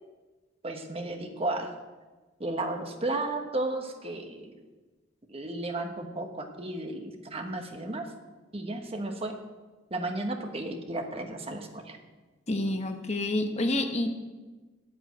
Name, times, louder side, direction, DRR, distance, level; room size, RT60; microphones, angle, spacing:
voice 1, 0.6-1.7 2.4-4.6 5.3-8.1 8.5-9.3 9.9-12.0, right 2 dB, 30° right, 4 dB, 1.2 m, -33 dB
voice 2, 12.5-14.1, left 1 dB, 35° left, 5 dB, 1.0 m, -28 dB
8.9 x 8.2 x 9.0 m, 1.3 s
head